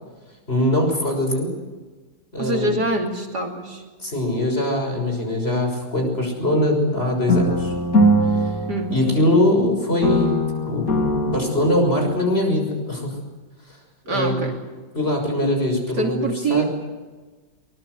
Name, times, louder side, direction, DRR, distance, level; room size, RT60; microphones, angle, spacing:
voice 1, 0.5-1.5 2.3-2.7 4.0-7.7 8.2-8.4 8.9-10.4 10.7-13.2 13.7-13.8 14.1-14.5 14.9-16.7, left 1 dB, 30° left, 3 dB, 6.5 m, -22 dB
voice 2, 2.4-3.8 8.7-8.9 14.1-14.5 16.0-16.6, right 2 dB, 60° right, 3 dB, 3.3 m, -24 dB
sound 1, 7.3-9.6 10.0-12.3, equal, 50° left, 3.0 m, -21 dB
23.5 x 21.0 x 8.2 m, 1.3 s
omnidirectional pair, 2.0 m